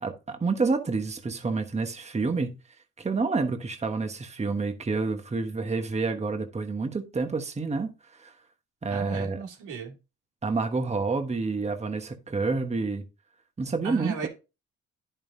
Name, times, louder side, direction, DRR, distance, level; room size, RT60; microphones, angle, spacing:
voice 1, 0.0-2.6 3.0-7.9 8.2-8.3 8.8-9.4 10.4-13.0 13.6-14.3, right 4 dB, 20° right, 1.2 m, -28 dB
voice 2, 8.9-10.0 13.8-14.3, right 5 dB, 90° right, 2.6 m, -35 dB
10.5 x 5.6 x 2.7 m
cardioid pair, 90°, 30 cm